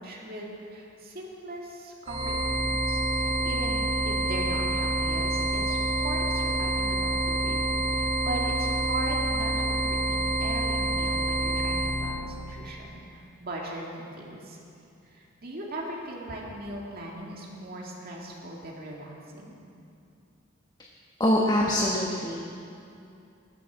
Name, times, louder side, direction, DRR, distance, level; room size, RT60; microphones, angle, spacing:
voice 1, 0.0-5.8 6.0-14.6 15.0-19.6, right 1 dB, 50° right, -2 dB, 2.1 m, -39 dB
sound 1, 2.1-12.0, right 1 dB, 30° right, 2.2 m, -27 dB
voice 2, 21.2-22.4, left 1 dB, 20° left, -2 dB, 1.2 m, -24 dB
21.0 x 8.2 x 6.2 m, 2.6 s
head